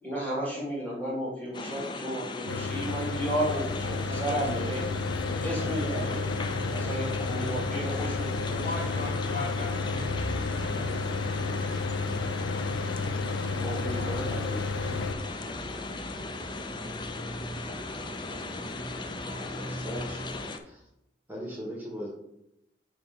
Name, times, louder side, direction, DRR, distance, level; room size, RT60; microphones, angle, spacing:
voice 1, 0.0-4.9 5.4-6.4 6.7-8.8 13.6-14.9, equal, 10° left, -5 dB, 2.0 m, -33 dB
sound 1, 1.5-20.6, left 3 dB, 25° left, 0.4 m, -38 dB
Mechanical fan, 2.5-15.1, left 4 dB, 85° left, 0.4 m, -32 dB
sound 2, 3.3-20.4, right 1 dB, 30° right, 0.7 m, -42 dB
voice 2, 8.5-11.6, left 2 dB, 45° left, -5 dB, 2.1 m, -40 dB
voice 3, 19.4-20.2 20.6-20.8 21.3-22.1, equal, 10° right, -3 dB, 1.1 m, -39 dB
4.5 x 4.2 x 5.6 m, 0.84 s
head